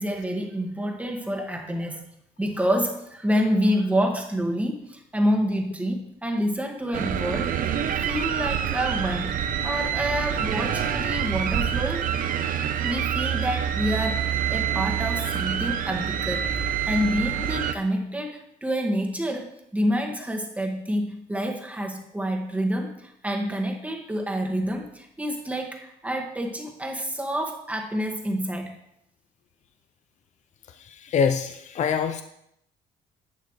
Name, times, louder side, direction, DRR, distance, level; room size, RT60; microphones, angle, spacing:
voice 1, 0.0-2.0 2.4-7.5 8.0-12.0 12.8-14.2 14.5-16.5 16.9-28.8, equal, 10° right, 1 dB, 1.8 m, -28 dB
sound 1, 6.9-17.7, right 9 dB, 55° right, 0.8 m, -26 dB
voice 2, 30.7-32.2, left 6 dB, 45° left, 8 dB, 0.6 m, -25 dB
11.5 x 8.2 x 3.2 m, 0.76 s
cardioid pair, 110°, 17 cm